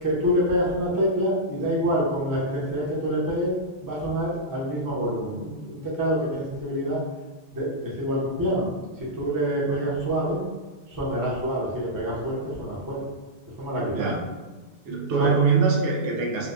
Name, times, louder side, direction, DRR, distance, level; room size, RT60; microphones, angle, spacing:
voice 1, 0.0-3.5 3.8-7.0 7.5-8.7 9.0-10.4 10.9-13.0 13.5-14.1 15.2-15.3, equal, 20° right, -6 dB, 0.7 m, -26 dB
voice 2, 14.8-16.5, right 5 dB, 85° right, -1 dB, 1.0 m, -23 dB
4.3 x 2.2 x 2.4 m, 1.3 s
omnidirectional pair, 1.2 m